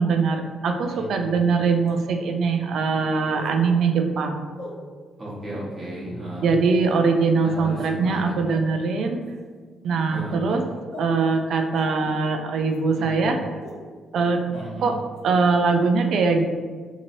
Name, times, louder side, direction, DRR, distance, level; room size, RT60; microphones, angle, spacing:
voice 1, 0.0-4.4 6.4-9.2 9.8-10.6 10.9-13.4 14.1-14.4 14.8-14.9 15.2-16.5, right 4 dB, 70° right, 5 dB, 0.3 m, -22 dB
voice 2, 0.7-1.3 5.2-6.5 7.4-8.5 10.1-10.4 13.0-13.4 14.5-15.0, right 1 dB, 30° right, -8 dB, 0.9 m, -35 dB
sound 1, 0.8-0.9 1.8-1.9 3.3-3.6 4.5-4.7 5.5-5.7 6.7-7.0 7.5-7.8 8.5-8.6 9.2-9.4 10.1-10.2 10.9-11.1 11.7-11.8 12.7-12.8 13.6-13.7 14.5-14.6 15.1-15.2, left 2 dB, 85° left, 0.7 m, -40 dB
2.9 x 2.8 x 2.6 m, 1.5 s
cardioid pair, 90°, 0 cm